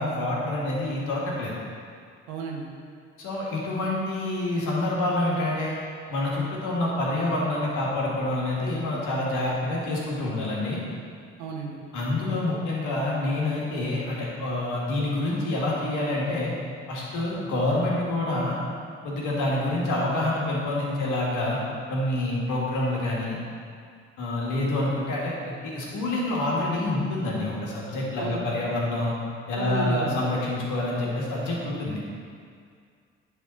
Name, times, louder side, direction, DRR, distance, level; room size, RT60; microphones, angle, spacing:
voice 1, 0.0-1.5 3.2-5.8 6.1-10.8 11.9-16.5 16.9-18.6 19.0-21.6 21.9-23.4 24.2-29.1 29.5-32.0, left 2 dB, 65° left, -4 dB, 1.7 m, -27 dB
voice 2, 2.3-2.7 11.4-11.8 28.2-28.4 29.5-30.2, right 4 dB, 75° right, 0 dB, 1.1 m, -32 dB
9.9 x 3.6 x 4.3 m, 2.2 s
hypercardioid pair, 45°, 33 cm